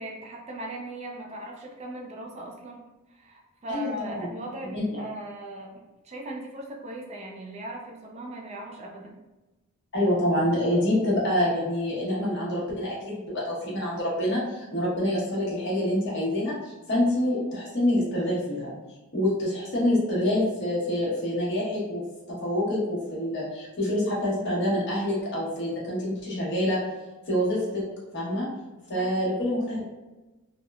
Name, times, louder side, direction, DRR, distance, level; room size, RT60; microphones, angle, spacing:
voice 1, 0.0-2.8 3.1-5.7 6.0-9.2 28.9-29.5, right 1 dB, 30° right, -1 dB, 0.4 m, -39 dB
voice 2, 3.7-4.3 4.7-5.0 9.9-18.7 19.1-26.8 27.3-27.8 28.1-28.5 28.9-29.8, left 1 dB, 55° left, -6 dB, 1.0 m, -26 dB
2.8 x 2.1 x 2.3 m, 1.1 s
head